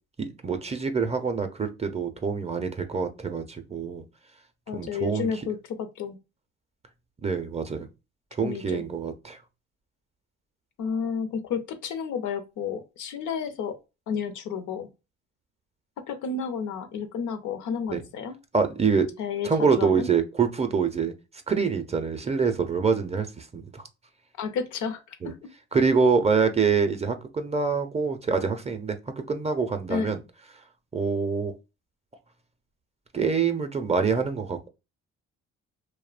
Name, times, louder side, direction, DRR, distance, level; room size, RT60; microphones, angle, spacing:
voice 1, 0.2-4.0 4.7-5.3 7.2-7.9 8.4-9.4 17.9-18.0 18.5-19.1 19.4-21.1 21.5-23.8 25.2-25.3 25.7-30.2 30.9-31.5 33.1-34.7, right 5 dB, 20° right, 0.4 m, -25 dB
voice 2, 4.7-6.2 8.4-8.8 10.8-13.8 14.1-14.9 16.1-18.4 19.2-20.1 24.4-25.5 29.9-30.1, left 6 dB, 75° left, 0.6 m, -31 dB
2.6 x 2.1 x 2.3 m
cardioid pair, 90°, 30 cm